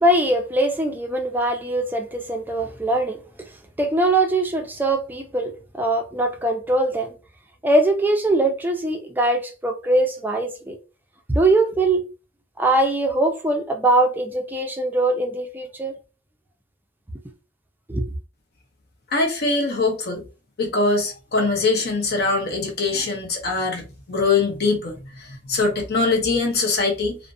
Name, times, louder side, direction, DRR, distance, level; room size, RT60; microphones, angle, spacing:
voice 1, 0.0-3.5 3.8-7.1 7.6-10.8 11.3-12.0 12.6-15.9 17.9-18.1, right 2 dB, 10° right, 0.4 m, -22 dB
voice 2, 19.1-20.2 20.6-27.2, left 3 dB, 50° left, 0.6 m, -22 dB
2.4 x 2.0 x 2.5 m
head